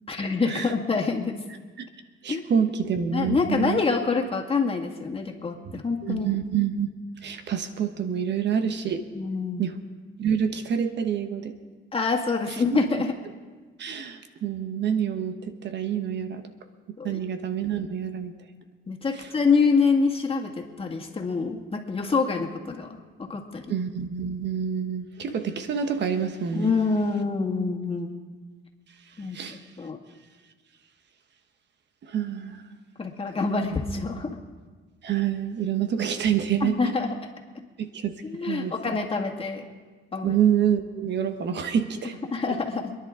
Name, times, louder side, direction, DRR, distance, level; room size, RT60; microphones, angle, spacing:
voice 1, 0.1-1.3 2.3-2.4 3.1-6.3 9.2-9.7 11.9-13.1 17.0-17.2 18.9-22.9 23.2-23.7 26.5-28.2 29.2-30.0 33.0-34.3 36.6-37.1 38.3-39.7 40.1-40.4 42.3-43.0, left 4 dB, 30° left, 2 dB, 2.0 m, -26 dB
voice 2, 2.2-3.8 5.6-6.9 7.2-9.0 9.6-9.7 10.2-11.6 12.5-12.8 13.8-16.4 17.0-18.3 19.1-19.3 23.7-26.7 29.0-29.7 32.0-32.6 33.6-33.8 35.0-36.9 37.8-39.0 40.2-42.2 42.5-42.6, right 8 dB, 60° right, 8 dB, 1.2 m, -27 dB
26.5 x 10.5 x 3.8 m, 1.4 s
cardioid pair, 90°, 20 cm